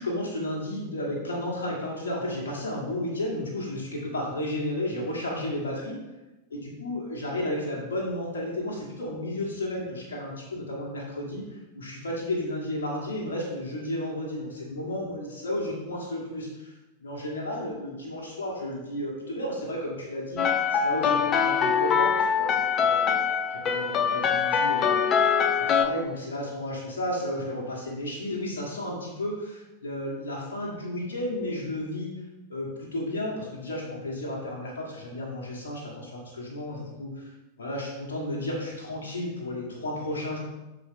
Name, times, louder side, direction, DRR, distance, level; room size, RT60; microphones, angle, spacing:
voice 1, 0.0-6.0 6.5-25.4 25.7-32.1 32.5-37.3 37.6-40.4, left 1 dB, 65° left, -3 dB, 1.5 m, -33 dB
sound 1, 20.4-25.8, left 7 dB, 30° left, 0.5 m, -23 dB
6.9 x 3.8 x 3.7 m, 1.0 s
figure-of-eight pair, 90°, 0 cm